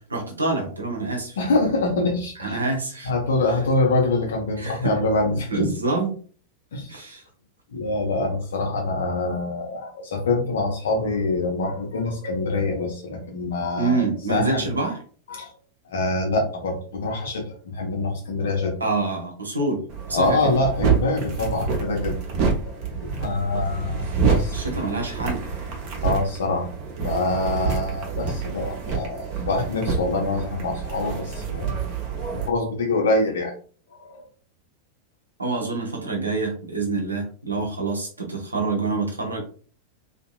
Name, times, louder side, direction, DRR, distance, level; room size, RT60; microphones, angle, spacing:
voice 1, 0.1-1.4 2.4-3.1 4.6-4.9 5.5-6.1 6.9-7.2 13.8-15.0 18.8-19.8 20.1-20.5 24.2-25.4 35.4-39.4, right 3 dB, 75° right, 2 dB, 0.8 m, -26 dB
voice 2, 1.4-2.6 3.0-5.7 6.7-6.9 7.7-14.7 15.3-15.5 15.8-18.8 19.6-19.7 20.1-22.7 23.2-24.8 26.0-26.7 27.0-31.8 32.3-33.5 33.9-34.2 37.6-37.7, left 2 dB, 60° left, 1 dB, 0.9 m, -25 dB
sound 1, 19.9-32.5, right 5 dB, 40° right, 0.8 m, -27 dB
2.8 x 2.6 x 2.2 m, 0.42 s
figure-of-eight pair, 90°, 0 cm